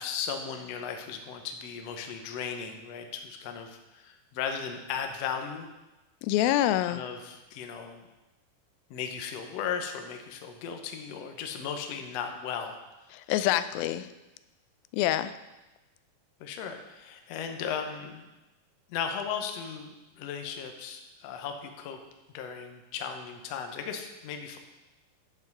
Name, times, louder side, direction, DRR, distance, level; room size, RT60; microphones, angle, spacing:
voice 1, 0.0-5.7 6.8-8.0 8.9-12.8 16.4-18.3 18.9-22.0 22.3-24.6, left 7 dB, 75° left, 5 dB, 1.5 m, -36 dB
voice 2, 6.2-7.0 13.1-14.1 14.9-15.3, left 13 dB, 90° left, 13 dB, 2.4 m, -26 dB
10.0 x 7.2 x 5.5 m, 1.0 s
omnidirectional pair, 4.1 m